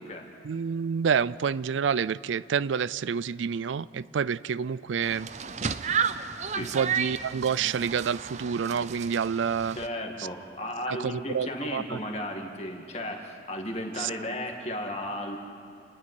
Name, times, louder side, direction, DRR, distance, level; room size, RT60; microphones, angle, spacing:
voice 1, 0.4-5.3 6.6-9.8 10.9-12.0 14.0-14.1, right 6 dB, 85° right, 19 dB, 0.4 m, -28 dB
sound 1, 5.0-9.9, right 6 dB, 40° right, 0.6 m, -32 dB
voice 2, 9.8-15.4, left 1 dB, 35° left, 2 dB, 2.2 m, -34 dB
29.0 x 10.5 x 9.8 m, 2.6 s
head